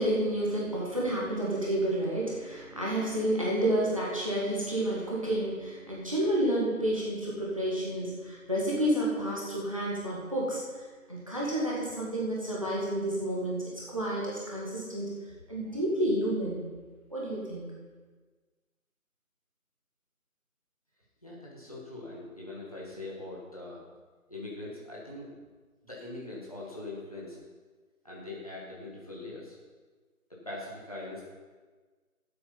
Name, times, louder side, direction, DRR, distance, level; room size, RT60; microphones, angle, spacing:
voice 1, 0.0-15.1 15.5-16.6 17.1-17.7, right 1 dB, 25° right, -5 dB, 1.7 m, -30 dB
voice 2, 21.2-23.8 24.3-25.3 25.8-27.4 28.0-29.6 30.3-31.2, left 2 dB, 25° left, -5 dB, 1.8 m, -42 dB
12.5 x 7.8 x 5.7 m, 1.4 s
figure-of-eight pair, 170°, 43 cm